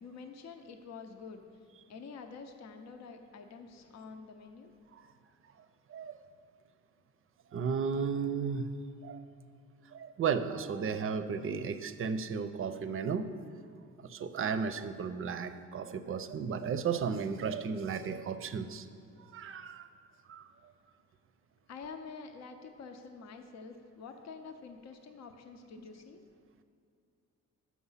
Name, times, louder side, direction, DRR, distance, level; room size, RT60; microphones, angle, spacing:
voice 1, 0.0-1.4 1.9-4.7 21.7-26.2, left 5 dB, 60° left, 6 dB, 0.7 m, -47 dB
voice 2, 7.5-8.7 9.0-9.2 9.9-13.3 14.0-18.9 19.2-19.9 20.3-20.4, right 6 dB, 45° right, 10 dB, 0.5 m, -34 dB
7.1 x 6.0 x 5.6 m, 2.5 s
cardioid pair, 90°, 30 cm